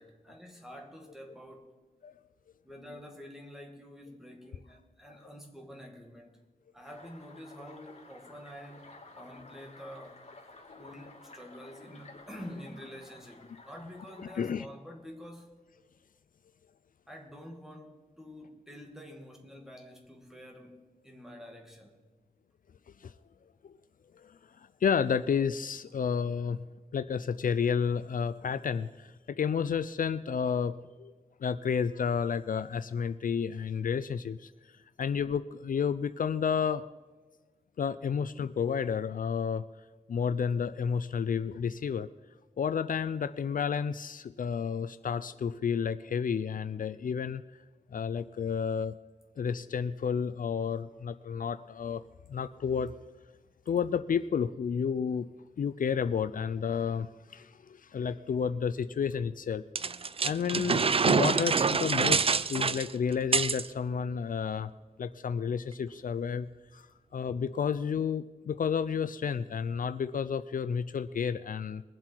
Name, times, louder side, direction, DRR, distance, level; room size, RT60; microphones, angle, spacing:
voice 1, 0.0-1.7 2.6-6.4 6.7-10.2 10.8-15.6 17.1-22.1, equal, 5° right, 2.2 m, -48 dB
sound 1, 6.8-14.6, left 2 dB, 50° left, 2.6 m, -53 dB
voice 2, 24.8-26.6 26.9-31.1 31.4-34.5 35.0-36.9 37.8-39.6 40.1-42.1 42.6-47.4 47.9-48.9 49.4-52.0 52.3-52.9 53.7-55.3 55.6-59.6 60.2-64.7 65.0-66.5 66.7-66.9 67.1-71.8, left 6 dB, 70° left, 0.4 m, -31 dB
sound 2, 59.8-63.7, right 5 dB, 40° right, 0.4 m, -26 dB
22.5 x 7.6 x 4.5 m
wide cardioid pair, 110°, 15 cm